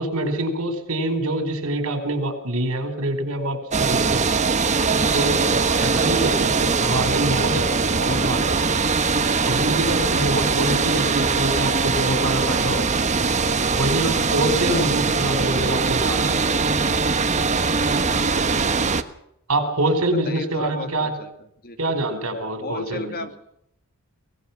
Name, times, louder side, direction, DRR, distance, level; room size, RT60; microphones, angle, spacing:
voice 1, 0.0-4.2 5.1-8.7 9.5-13.0 13.7-16.7 19.5-21.1 21.8-23.3, right 1 dB, 75° right, 8 dB, 4.6 m, -25 dB
sound 1, 3.7-19.0, right 4 dB, 35° right, 1.3 m, -21 dB
voice 2, 18.0-18.5 20.2-21.3 21.6-21.8 22.6-23.4, left 2 dB, 45° left, 8 dB, 2.3 m, -34 dB
23.0 x 19.0 x 5.9 m, 0.75 s
head